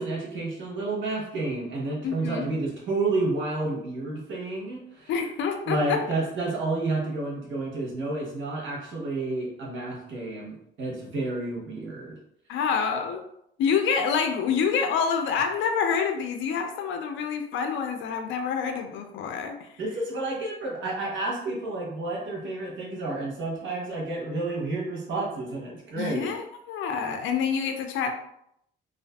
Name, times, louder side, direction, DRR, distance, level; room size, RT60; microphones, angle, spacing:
voice 1, 0.0-5.1 5.7-12.1 19.8-26.3, right 2 dB, 75° right, -2 dB, 0.9 m, -30 dB
voice 2, 2.0-2.5 5.1-6.0 12.5-13.2 13.6-19.7 26.0-28.1, left 6 dB, 75° left, 5 dB, 0.4 m, -27 dB
2.4 x 2.4 x 2.3 m, 0.74 s
cardioid pair, 90°, 20 cm